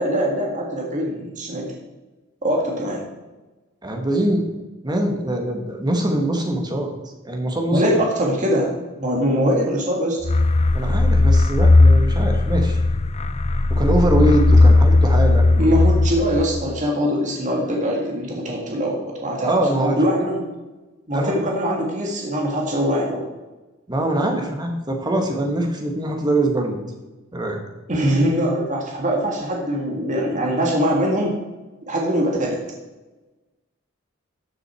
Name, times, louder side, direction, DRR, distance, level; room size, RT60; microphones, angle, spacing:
voice 1, 0.0-1.7 2.4-3.0 7.7-10.2 15.5-20.5 21.1-23.3 27.9-31.4 31.9-32.6, equal, 35° right, -1 dB, 1.8 m, -22 dB
voice 2, 3.8-4.4 4.8-6.9 7.2-8.0 10.7-12.8 13.7-15.4 19.4-20.0 21.1-21.3 23.9-26.8 27.3-27.6, right 1 dB, 20° right, 3 dB, 1.7 m, -22 dB
sound 1, 10.2-16.8, left 2 dB, 30° left, 0.5 m, -16 dB
13.5 x 6.7 x 4.4 m, 1.2 s
head